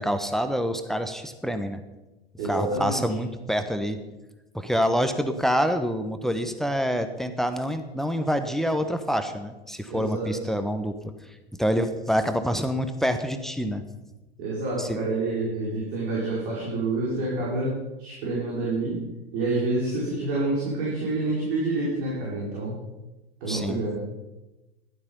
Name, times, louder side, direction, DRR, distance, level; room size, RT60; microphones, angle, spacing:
voice 1, 0.0-1.8 2.4-4.0 4.5-11.0 11.6-13.8 14.8-15.0 23.5-23.8, equal, ahead, 8 dB, 1.1 m, -26 dB
voice 2, 2.4-3.0 9.9-10.3 14.4-19.0 19.3-22.8 23.4-24.0, right 2 dB, 55° right, -5 dB, 5.2 m, -28 dB
14.5 x 12.0 x 5.4 m, 1.1 s
figure-of-eight pair, 85°, 31 cm